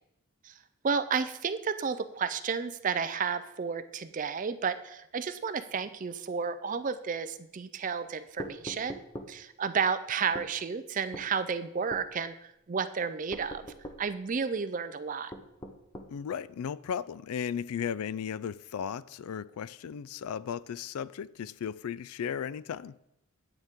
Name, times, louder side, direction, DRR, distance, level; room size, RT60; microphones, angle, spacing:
voice 1, 0.8-9.0 9.3-12.4 12.7-13.7 14.0-15.3, right 6 dB, 35° right, 12 dB, 0.4 m, -32 dB
sound 1, 8.4-9.3 10.3-10.5 11.1-11.3 11.9-12.1 13.3-14.0 15.3-16.1, equal, 20° left, 0.7 m, -42 dB
voice 2, 16.1-23.0, left 7 dB, 80° left, 19 dB, 0.3 m, -35 dB
9.5 x 9.0 x 3.6 m, 0.82 s
head